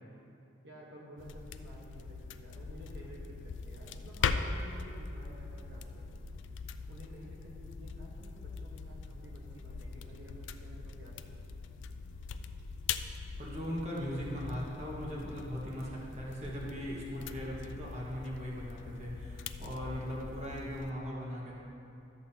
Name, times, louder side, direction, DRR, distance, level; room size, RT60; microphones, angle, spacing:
voice 1, 0.6-6.3 6.9-11.4, equal, 65° right, -3 dB, 1.3 m, -52 dB
sound 1, 1.2-20.9, left 5 dB, 70° left, 0.4 m, -41 dB
voice 2, 13.4-21.5, equal, 35° right, -5 dB, 1.5 m, -39 dB
12.5 x 7.6 x 2.8 m, 2.7 s
head